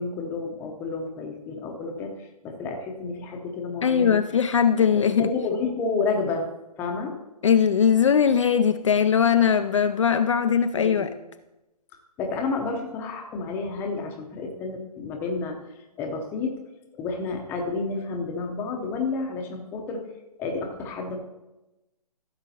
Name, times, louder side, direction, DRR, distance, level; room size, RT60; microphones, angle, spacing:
voice 1, 0.0-4.2 5.0-6.5 6.8-7.1 10.7-11.1 12.2-15.6 16.0-16.5 17.0-20.0 20.4-21.2, left 4 dB, 10° left, 0.7 m, -30 dB
voice 2, 3.8-5.3 7.4-11.1, left 7 dB, 50° left, 0.4 m, -20 dB
14.5 x 6.9 x 2.8 m
figure-of-eight pair, 145°, 21 cm